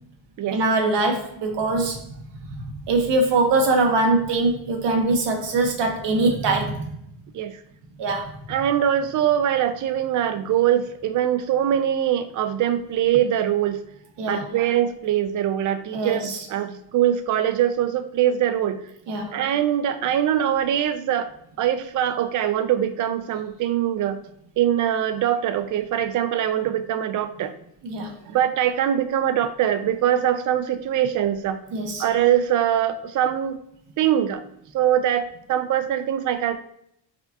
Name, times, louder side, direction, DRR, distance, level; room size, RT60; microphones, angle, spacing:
voice 1, 0.5-2.1 2.8-6.9 8.0-8.3 14.2-14.4 15.9-16.4 19.1-19.3 27.8-28.1 31.7-32.0, right 2 dB, 70° right, 3 dB, 1.1 m, -22 dB
voice 2, 8.5-13.8 14.3-18.8 19.3-24.2 24.6-27.5 28.3-31.6 32.0-33.6 34.0-34.4 34.7-36.6, right 10 dB, 45° right, 10 dB, 0.4 m, -23 dB
5.0 x 2.7 x 3.3 m, 0.73 s
cardioid pair, 150°, 44 cm